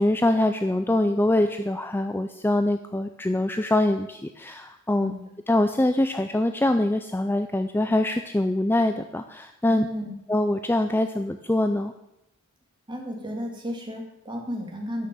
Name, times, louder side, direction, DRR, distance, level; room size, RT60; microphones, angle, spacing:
voice 1, 0.0-5.1 5.5-9.9 10.3-11.9, left 1 dB, 10° left, 7 dB, 0.4 m, -24 dB
voice 2, 9.7-10.1 12.9-15.1, equal, 20° right, 0 dB, 2.4 m, -33 dB
12.5 x 6.3 x 6.9 m, 0.86 s
head